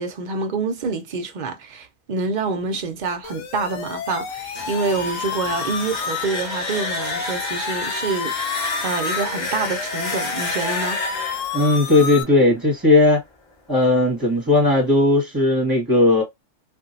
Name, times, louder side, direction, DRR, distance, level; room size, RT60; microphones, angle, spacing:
voice 1, 0.0-11.0, right 4 dB, 50° right, 0.5 m, -27 dB
sound 1, 3.2-12.2, left 7 dB, 75° left, 0.9 m, -31 dB
sound 2, 4.4-13.2, left 2 dB, 25° left, 0.9 m, -30 dB
voice 2, 11.5-13.2 13.7-16.2, left 2 dB, 15° right, 1.5 m, -17 dB
2.9 x 2.6 x 2.6 m
omnidirectional pair, 1.4 m